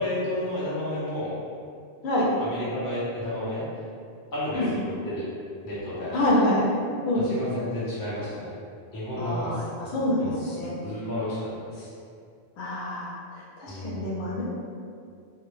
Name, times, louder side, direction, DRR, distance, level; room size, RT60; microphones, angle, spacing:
voice 1, 0.0-1.3 2.4-3.6 4.3-5.3 5.6-6.1 7.1-8.5 8.9-9.6 10.2-10.5 10.8-11.9 13.7-14.1, left 1 dB, 25° left, -9 dB, 0.5 m, -31 dB
voice 2, 6.1-6.6 7.1-7.2 9.2-10.7 12.6-14.4, left 1 dB, 80° left, -5 dB, 0.8 m, -26 dB
2.1 x 2.1 x 3.0 m, 2.3 s
omnidirectional pair, 1.1 m